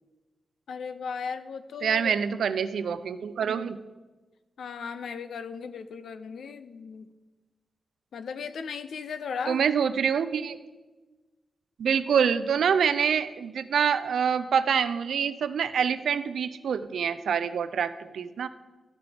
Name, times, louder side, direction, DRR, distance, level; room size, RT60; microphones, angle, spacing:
voice 1, 0.7-2.2 4.6-7.1 8.1-9.7, left 6 dB, 85° left, 10 dB, 0.5 m, -36 dB
voice 2, 1.8-3.8 9.5-10.6 11.8-18.5, right 7 dB, 90° right, 13 dB, 0.4 m, -26 dB
12.0 x 5.9 x 3.4 m, 1.2 s
wide cardioid pair, 105°, 0 cm